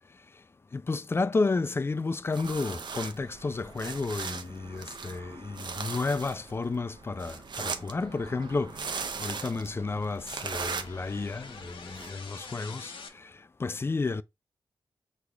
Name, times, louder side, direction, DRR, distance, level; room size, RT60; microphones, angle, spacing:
voice 1, 0.7-13.3 13.6-14.2, left 3 dB, 25° left, 0.3 m, -32 dB
sound 1, 2.3-12.1, right 5 dB, 60° right, 0.6 m, -39 dB
sound 2, 6.9-13.1, left 5 dB, 85° left, 0.8 m, -49 dB
6.1 x 2.4 x 3.3 m
cardioid pair, 80°, 9 cm